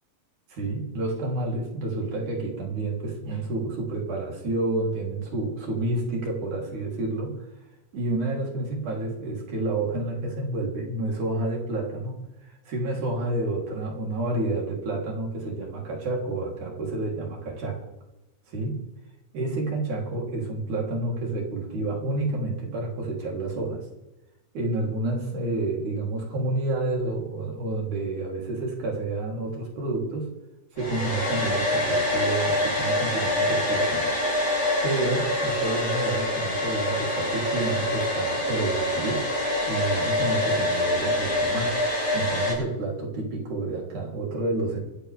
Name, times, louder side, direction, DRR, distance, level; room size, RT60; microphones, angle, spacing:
voice 1, 0.5-7.5 7.9-17.8 18.5-18.8 19.3-23.9 24.5-30.3 30.7-34.1 34.8-39.3 39.7-41.8 42.1-44.8, right 2 dB, 70° right, -1 dB, 4.9 m, -29 dB
Domestic sounds home sounds, 30.8-42.5, left 1 dB, 35° left, 8.5 m, -25 dB
24.5 x 15.0 x 3.5 m, 0.99 s
omnidirectional pair, 3.7 m